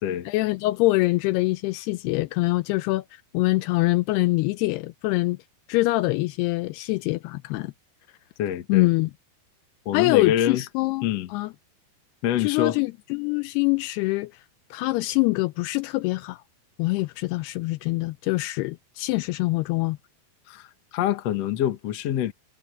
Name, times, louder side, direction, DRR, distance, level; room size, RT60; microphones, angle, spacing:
voice 1, 0.3-3.1 3.3-5.4 5.7-7.7 8.7-9.1 9.9-11.5 12.4-14.3 14.7-16.4 16.8-20.0, left 21 dB, 80° left, 2.5 m, -24 dB
voice 2, 8.4-8.9 9.8-10.6 11.0-11.3 12.2-12.8 20.5-22.3, left 11 dB, 60° left, 1.7 m, -26 dB
omnidirectional pair, 4.8 m